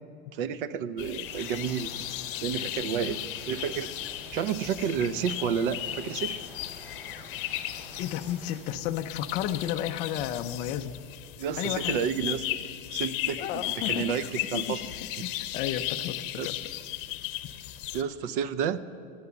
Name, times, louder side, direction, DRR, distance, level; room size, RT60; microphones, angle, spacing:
voice 1, 0.3-2.1 2.4-3.9 4.3-6.4 11.4-12.6 12.9-14.9 15.2-15.3 16.4-16.5 17.9-18.8, right 7 dB, 60° right, 15 dB, 0.6 m, -31 dB
sound 1, 1.0-18.0, left 14 dB, 60° left, 0.7 m, -36 dB
sound 2, 1.2-8.6, left 1 dB, 5° right, 3.4 m, -48 dB
voice 2, 8.0-10.9 11.6-12.0 13.4-14.8 15.2-16.6, left 11 dB, 25° left, 6 dB, 0.4 m, -32 dB
13.5 x 9.5 x 6.9 m, 2.5 s
supercardioid pair, 155°, 31 cm